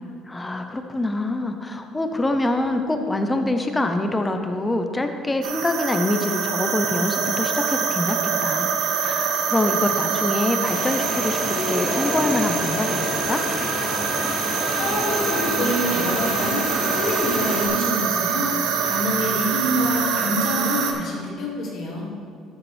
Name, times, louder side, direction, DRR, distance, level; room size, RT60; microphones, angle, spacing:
voice 1, 0.2-8.7 9.0-13.4, left 2 dB, 15° left, 6 dB, 0.7 m, -25 dB
sound 1, 5.4-20.9, right 6 dB, 85° right, 0.8 m, -25 dB
sound 2, 10.6-17.7, left 2 dB, 40° left, 2.4 m, -29 dB
voice 2, 14.7-18.5 18.8-22.1, left 1 dB, 60° left, -4 dB, 2.2 m, -26 dB
13.0 x 5.9 x 3.4 m, 2.2 s
cardioid pair, 105°, 0 cm